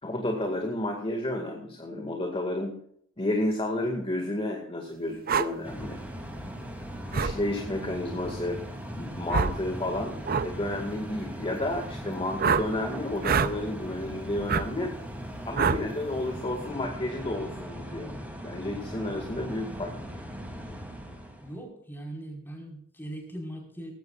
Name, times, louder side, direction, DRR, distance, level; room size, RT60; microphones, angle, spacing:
voice 1, 0.0-2.7 3.2-6.0 7.1-8.6 9.0-10.2 10.4-14.9 15.4-18.1 18.4-19.9, left 1 dB, 25° left, 1 dB, 2.1 m, -31 dB
sound 1, 5.3-5.5 7.1-7.4 9.3-9.6 10.2-10.5 12.4-12.7 13.2-13.5 14.5-14.7 15.6-15.8, right 5 dB, 45° right, 0.6 m, -25 dB
sound 2, 5.6-21.6, equal, 10° right, 2.9 m, -39 dB
voice 2, 21.4-23.9, right 1 dB, 10° left, 0 dB, 5.0 m, -40 dB
19.0 x 16.0 x 2.5 m, 0.69 s
head